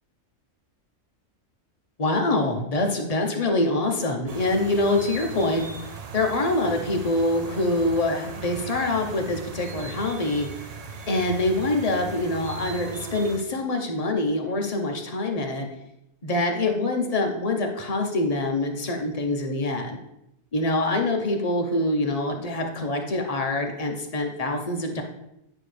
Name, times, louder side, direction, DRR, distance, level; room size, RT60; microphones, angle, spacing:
voice 1, 2.0-5.6 6.1-10.5 11.1-15.7 16.2-20.0 20.5-25.0, left 2 dB, 30° left, 3 dB, 0.9 m, -25 dB
sound 1, 4.3-13.4, right 5 dB, 70° right, 0.3 m, -39 dB
9.8 x 5.3 x 3.3 m, 0.83 s
omnidirectional pair, 1.4 m